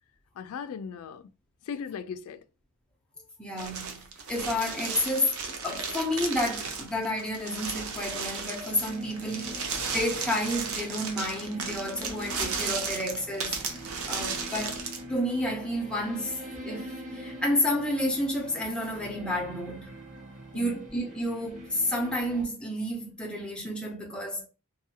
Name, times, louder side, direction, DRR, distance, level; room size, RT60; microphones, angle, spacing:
voice 1, 0.4-1.3 1.6-2.4 20.5-20.8, left 6 dB, 80° left, 0.3 m, -38 dB
voice 2, 3.4-13.6 14.1-19.9 20.5-24.5, left 1 dB, 5° left, 0.6 m, -30 dB
sound 1, 3.6-15.0, right 5 dB, 80° right, 0.6 m, -35 dB
sound 2, 8.7-22.4, equal, 35° right, 1.1 m, -44 dB
2.6 x 2.4 x 2.7 m
head